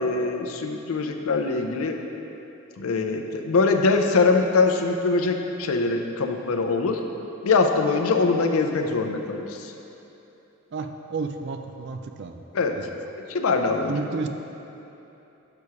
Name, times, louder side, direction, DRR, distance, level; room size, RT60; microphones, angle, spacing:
voice 1, 0.0-2.0 2.8-7.0 7.4-9.7 12.5-12.8 13.2-14.0, left 3 dB, 75° left, 5 dB, 0.5 m, -23 dB
voice 2, 10.7-12.4 12.7-12.9 13.9-14.3, right 4 dB, 50° right, 6 dB, 0.4 m, -31 dB
6.9 x 4.7 x 4.8 m, 3.0 s
head